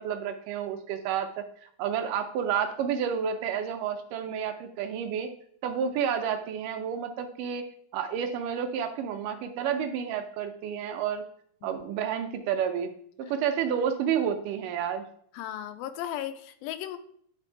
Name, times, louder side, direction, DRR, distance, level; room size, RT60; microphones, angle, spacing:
voice 1, 0.0-5.3 5.6-7.6 7.9-11.2 11.6-12.9 13.2-15.1, right 8 dB, 80° right, 6 dB, 2.0 m, -30 dB
voice 2, 15.3-17.0, left 11 dB, 85° left, 10 dB, 2.3 m, -36 dB
9.8 x 3.4 x 4.5 m, 0.63 s
omnidirectional pair, 4.0 m